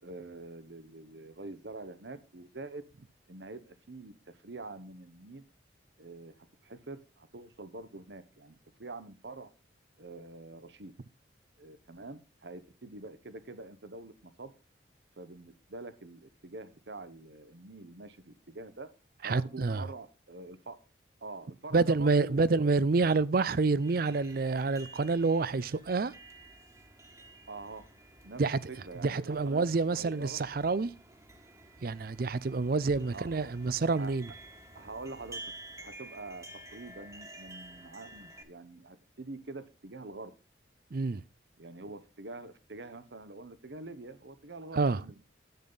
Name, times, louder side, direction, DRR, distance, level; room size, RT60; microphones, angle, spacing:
voice 1, 0.0-2.8 3.3-5.4 6.0-6.4 6.6-8.5 8.8-9.5 10.0-10.9 11.6-14.5 15.2-18.9 19.2-20.8 21.2-22.7 27.5-27.8 28.2-28.4 28.7-30.4 33.1-33.5 33.8-34.1 34.7-35.4 35.8-40.3 41.6-45.2, right 2 dB, 65° right, 1.0 m, -45 dB
voice 2, 19.2-19.8 21.7-26.1 28.4-28.6 29.0-30.9 31.8-34.3 40.9-41.2 44.7-45.0, right 3 dB, 50° right, 0.5 m, -28 dB
sound 1, 23.8-38.4, right 2 dB, 15° right, 1.5 m, -51 dB
10.5 x 8.6 x 4.0 m
head